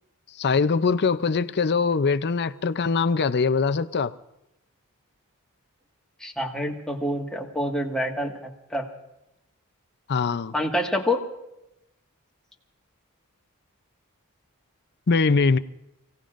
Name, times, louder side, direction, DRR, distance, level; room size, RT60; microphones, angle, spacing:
voice 1, 0.4-4.1 10.1-10.5 15.1-15.6, left 4 dB, 50° left, 0.6 m, -22 dB
voice 2, 6.2-8.9 10.5-11.2, left 1 dB, 5° left, 1.7 m, -27 dB
30.0 x 17.5 x 2.6 m
head